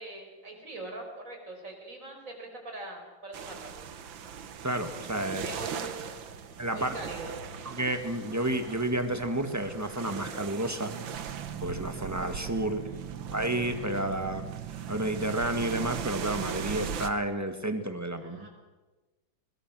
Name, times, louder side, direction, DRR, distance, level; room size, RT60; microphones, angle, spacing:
voice 1, 0.0-3.7 5.4-5.9 6.7-7.4 12.6-13.1 18.2-18.5, right 2 dB, 40° right, 1 dB, 5.3 m, -42 dB
sound 1, 3.3-17.1, right 8 dB, 85° right, 1.9 m, -39 dB
voice 2, 4.6-5.4 6.6-7.0 7.6-10.9 11.2-11.3 11.6-12.8 13.3-14.4 14.9-18.5, right 1 dB, 10° right, 7 dB, 1.6 m, -31 dB
sound 2, 5.2-10.1, equal, 65° left, 6.2 m, -53 dB
22.5 x 21.5 x 6.3 m, 1.2 s
omnidirectional pair, 2.1 m